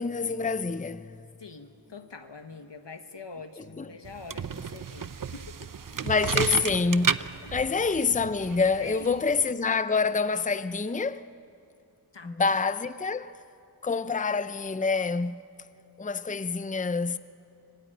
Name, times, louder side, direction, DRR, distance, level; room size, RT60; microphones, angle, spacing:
voice 1, 0.0-1.2 3.6-3.9 6.0-7.3 7.5-11.2 12.2-13.4 13.8-15.4 16.0-17.2, left 4 dB, 20° left, 0.6 m, -27 dB
voice 2, 1.4-5.7 7.4-7.7 8.8-9.2 12.1-12.5, left 4 dB, 90° left, 1.5 m, -44 dB
sound 1, 4.1-9.5, right 6 dB, 50° right, 0.6 m, -32 dB
25.0 x 20.0 x 9.1 m
wide cardioid pair, 45°, 42 cm